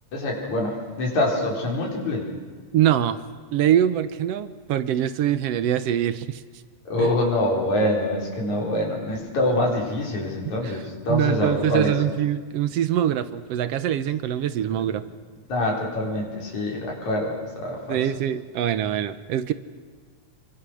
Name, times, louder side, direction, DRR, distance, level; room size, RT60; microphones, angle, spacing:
voice 1, 0.1-2.2 6.9-12.0 15.5-18.0, left 1 dB, 70° left, -2 dB, 5.7 m, -25 dB
voice 2, 2.7-3.2 3.5-6.4 7.0-7.1 10.6-10.8 11.1-15.0 17.9-19.5, right 11 dB, 70° right, 12 dB, 1.6 m, -23 dB
26.5 x 24.5 x 6.4 m, 1.6 s
omnidirectional pair, 3.4 m